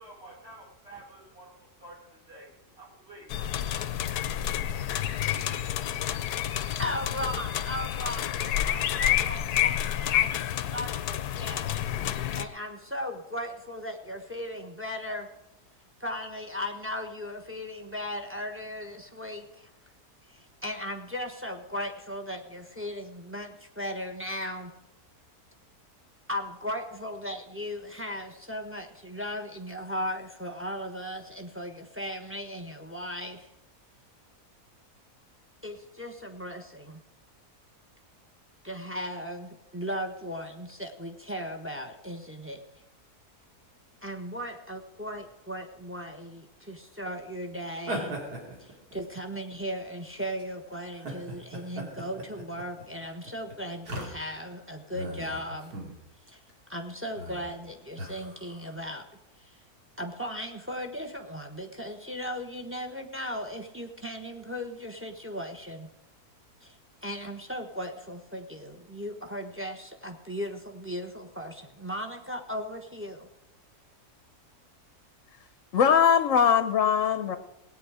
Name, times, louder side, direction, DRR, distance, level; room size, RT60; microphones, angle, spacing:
voice 1, 0.0-3.6, right 2 dB, 40° right, -2 dB, 4.4 m, -50 dB
sound 1, 3.3-12.5, left 11 dB, 80° left, 1.2 m, -29 dB
voice 2, 6.8-11.9 12.4-15.3 16.0-19.7 20.3-24.7 26.3-33.5 35.6-37.0 38.6-42.6 44.0-48.2 48.6-55.7 56.3-56.4 56.7-59.0 59.4-59.6 60.0-65.9 66.6-66.8 67.0-73.3, equal, 10° right, 5 dB, 1.0 m, -37 dB
sound 2, 47.8-49.6 50.2-50.4 50.9-54.5 54.9-56.0 56.3-56.5 57.1-57.5 58.0-58.7, right 1 dB, 75° right, 3.1 m, -38 dB
voice 3, 75.7-77.4, left 7 dB, 60° left, 10 dB, 1.0 m, -21 dB
18.0 x 9.0 x 4.9 m, 0.94 s
omnidirectional pair, 1.6 m